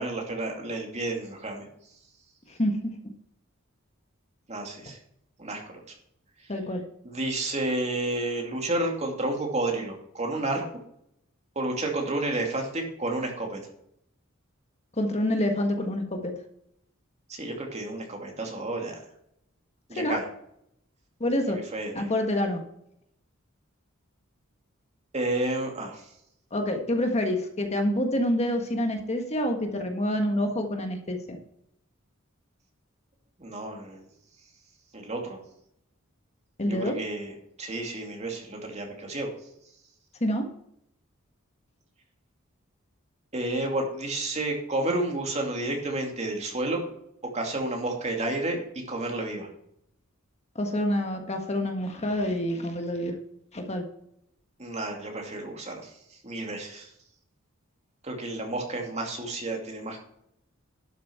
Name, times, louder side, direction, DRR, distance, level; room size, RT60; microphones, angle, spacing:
voice 1, 0.0-1.7 4.5-5.0 5.4-5.8 7.0-10.6 11.6-13.6 17.3-19.0 19.9-20.2 21.5-22.0 25.1-26.0 33.4-34.0 34.9-35.4 36.6-37.3 37.6-39.3 43.3-46.8 47.3-49.5 54.6-55.9 56.2-56.9 58.0-60.0, right 2 dB, 35° right, 2 dB, 2.5 m, -31 dB
voice 2, 6.5-6.8 15.0-16.3 19.9-20.2 21.2-21.6 21.9-22.6 26.5-31.4 36.6-37.0 40.2-40.5 50.5-53.2 53.5-53.8, left 1 dB, 30° left, 4 dB, 1.5 m, -27 dB
11.5 x 7.4 x 4.5 m, 0.73 s
head